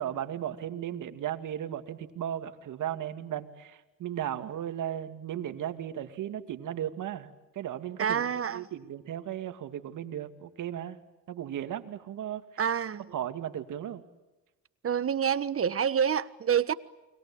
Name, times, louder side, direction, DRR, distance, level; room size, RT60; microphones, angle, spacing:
voice 1, 0.0-11.0 11.3-12.6 13.1-14.0, right 10 dB, 65° right, 2.4 m, -36 dB
voice 2, 8.0-8.6 12.6-13.0 14.8-16.7, right 8 dB, 40° right, 1.4 m, -27 dB
29.5 x 23.0 x 8.7 m
supercardioid pair, 80°, 33 cm